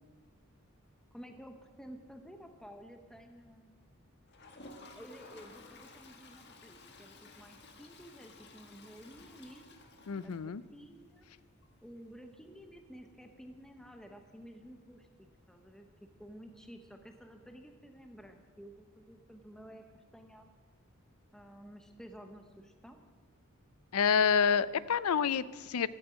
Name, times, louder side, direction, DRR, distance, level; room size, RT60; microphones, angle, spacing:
voice 1, 1.1-3.8 4.9-9.8 10.2-11.3 11.8-15.1 15.5-15.9 16.2-20.5 21.3-23.0, equal, 5° left, 5 dB, 0.9 m, -52 dB
Toilet flush, 4.3-11.0 11.3-11.4 11.6-11.7 12.0-12.1 14.6-14.7 16.0-16.1, left 3 dB, 50° left, 1.6 m, -55 dB
voice 2, 10.1-10.6 23.9-25.9, left 6 dB, 90° left, 18 dB, 0.5 m, -28 dB
16.0 x 12.5 x 5.1 m, 1.5 s
head